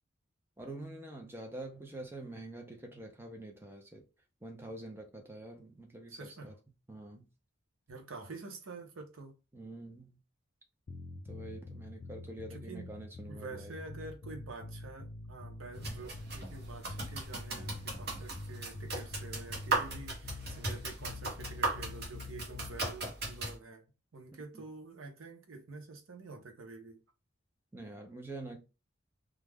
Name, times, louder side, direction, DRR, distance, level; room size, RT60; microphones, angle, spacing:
voice 1, 0.6-4.0 4.4-6.5 6.9-7.3 9.5-10.2 11.3-13.8 15.9-16.1 24.5-24.7 27.7-28.6, right 2 dB, 10° right, 0.5 m, -46 dB
voice 2, 6.1-6.5 7.9-9.3 12.5-12.9 13.3-23.8 24.1-27.0, right 3 dB, 85° right, 0.7 m, -48 dB
sound 1, 10.9-22.8, left 2 dB, 45° left, 0.4 m, -46 dB
sound 2, 15.8-23.6, right 2 dB, 50° right, 0.9 m, -38 dB
2.3 x 2.1 x 3.3 m
head